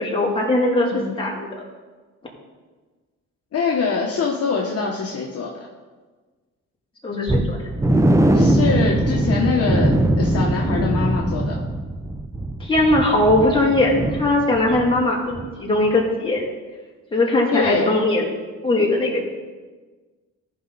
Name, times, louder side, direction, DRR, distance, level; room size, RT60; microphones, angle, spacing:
voice 1, 0.0-1.5 7.0-7.6 12.6-16.4 17.1-18.4 18.6-19.3, left 2 dB, 15° left, -3 dB, 3.0 m, -20 dB
voice 2, 3.5-5.7 8.3-11.6 17.5-17.9, left 5 dB, 50° left, -1 dB, 1.2 m, -24 dB
sound 1, 7.3-15.0 15.3-15.5 15.9-16.0, right 1 dB, 10° right, 0.7 m, -21 dB
14.5 x 5.9 x 4.1 m, 1.3 s
cardioid pair, 90°, 30 cm